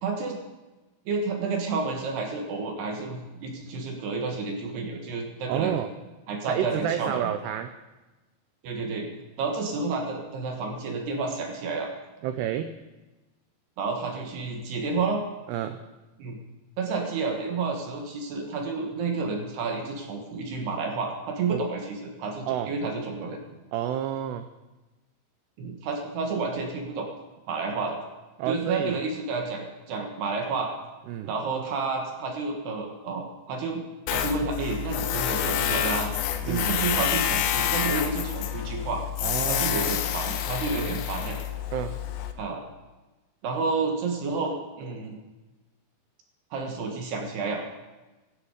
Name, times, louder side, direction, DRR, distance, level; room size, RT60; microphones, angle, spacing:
voice 1, 0.0-0.4 1.1-5.7 6.3-7.3 8.6-9.1 9.4-11.9 13.8-15.2 16.2-16.4 16.8-23.4 25.6-27.1 27.5-28.0 28.5-30.8 31.2-33.8 34.1-36.1 36.5-39.0 39.5-41.4 42.4-42.6 43.4-45.2 46.5-47.6, right 4 dB, 65° right, 2 dB, 3.3 m, -30 dB
voice 2, 5.5-5.9 6.5-7.7 12.2-12.8 15.5-15.8 21.5-21.6 22.5-22.8 23.7-24.5 28.4-29.0 31.1-31.3 36.4-36.7 39.2-39.9 40.7-40.9 41.7-42.0, right 10 dB, 85° right, 9 dB, 2.4 m, -30 dB
Tools, 34.1-42.3, left 11 dB, 80° left, 3.3 m, -28 dB
17.0 x 13.0 x 5.0 m, 1.1 s
omnidirectional pair, 5.5 m